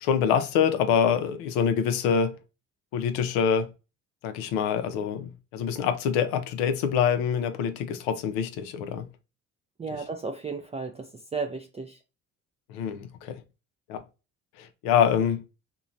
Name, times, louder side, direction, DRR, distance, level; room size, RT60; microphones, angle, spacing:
voice 1, 0.0-2.4 2.9-3.7 4.2-9.1 12.7-13.4 13.9-14.0 14.6-15.4, left 7 dB, 90° left, 0.5 m, -25 dB
voice 2, 9.8-12.0, right 4 dB, 20° right, 0.3 m, -34 dB
3.0 x 2.2 x 2.5 m
supercardioid pair, 70°, 35 cm